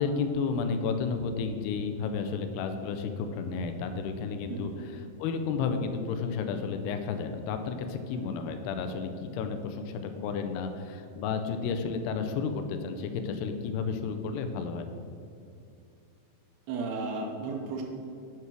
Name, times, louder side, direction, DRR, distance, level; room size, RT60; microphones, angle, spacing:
voice 1, 0.0-14.9, left 5 dB, 85° left, 6 dB, 2.3 m, -32 dB
voice 2, 16.7-17.8, right 4 dB, 75° right, 0 dB, 2.6 m, -34 dB
7.7 x 5.6 x 6.0 m, 2.5 s
omnidirectional pair, 5.3 m